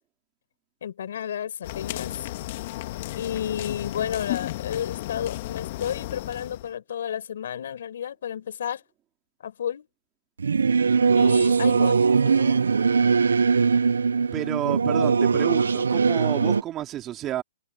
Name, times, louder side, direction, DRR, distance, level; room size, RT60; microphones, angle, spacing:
voice 1, 0.8-2.3 3.2-8.8 9.4-9.9 11.1-12.6, left 9 dB, 65° left, 4.7 m, -32 dB
sound 1, 1.6-6.7, left 17 dB, 45° left, 1.7 m, -34 dB
Singing / Musical instrument, 10.4-16.6, right 5 dB, 85° right, 0.7 m, -21 dB
voice 2, 14.3-17.4, right 13 dB, 20° right, 2.8 m, -30 dB
hypercardioid pair, 145°, 0 cm